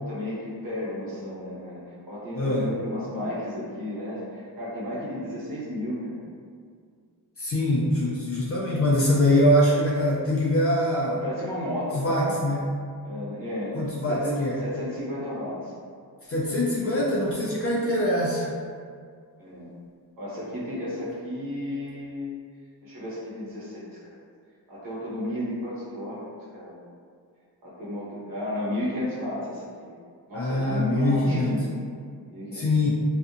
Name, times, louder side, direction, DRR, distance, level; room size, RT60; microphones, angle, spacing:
voice 1, 0.0-6.3 11.2-12.4 13.0-15.7 19.4-19.7 20.2-22.4 22.8-24.1 24.7-26.2 26.5-26.8 27.6-29.9 30.3-31.6 32.3-32.9, left 1 dB, 55° right, -8 dB, 1.0 m, -33 dB
voice 2, 2.4-2.7 7.4-11.2 11.9-12.7 13.7-14.6 16.3-18.5 30.3-31.5 32.5-32.9, left 1 dB, 35° left, -5 dB, 0.4 m, -23 dB
2.6 x 2.4 x 2.4 m, 2.1 s
wide cardioid pair, 140°, 41 cm